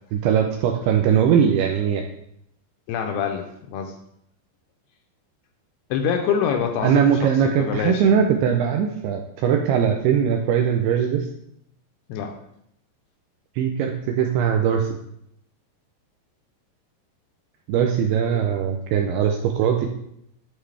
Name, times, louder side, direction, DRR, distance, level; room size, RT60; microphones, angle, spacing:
voice 1, 0.1-2.0 6.8-11.3 13.6-14.9 17.7-19.9, right 8 dB, 85° right, 3 dB, 2.3 m, -20 dB
voice 2, 2.9-3.9 5.9-7.3 7.6-8.2 12.1-12.3 18.3-18.4, left 7 dB, 80° left, 3 dB, 2.4 m, -25 dB
11.0 x 4.0 x 3.3 m, 0.75 s
omnidirectional pair, 5.1 m